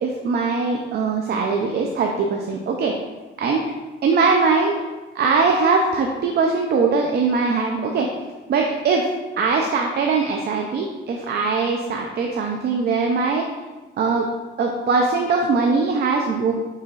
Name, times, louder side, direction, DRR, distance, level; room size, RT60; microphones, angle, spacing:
voice 1, 0.0-3.0 3.4-3.6 4.0-4.8 5.1-8.1 8.5-9.1 9.4-13.5 14.0-14.3 14.6-16.5, right 4 dB, 55° right, 1 dB, 0.5 m, -21 dB
5.6 x 3.8 x 2.4 m, 1.2 s
cardioid pair, 90°, 20 cm